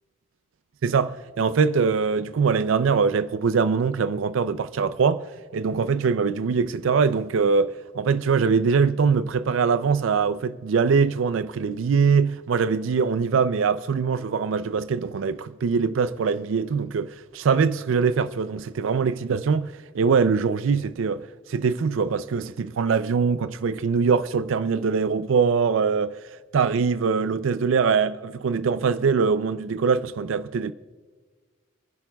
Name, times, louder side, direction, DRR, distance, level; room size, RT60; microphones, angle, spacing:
voice 1, 0.8-5.2 5.5-26.2 26.5-30.7, right 5 dB, 75° right, 0.4 m, -23 dB
27.5 x 10.5 x 2.3 m
head